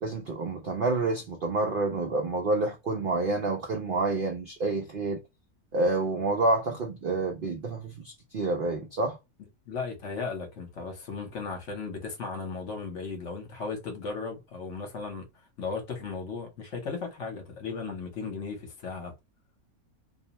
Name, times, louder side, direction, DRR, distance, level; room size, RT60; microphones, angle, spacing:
voice 1, 0.0-5.2 5.7-9.2, right 2 dB, 75° right, 0.5 m, -28 dB
voice 2, 9.7-15.2 15.6-19.1, left 4 dB, 55° left, 1.1 m, -36 dB
2.6 x 2.1 x 2.8 m
omnidirectional pair, 1.6 m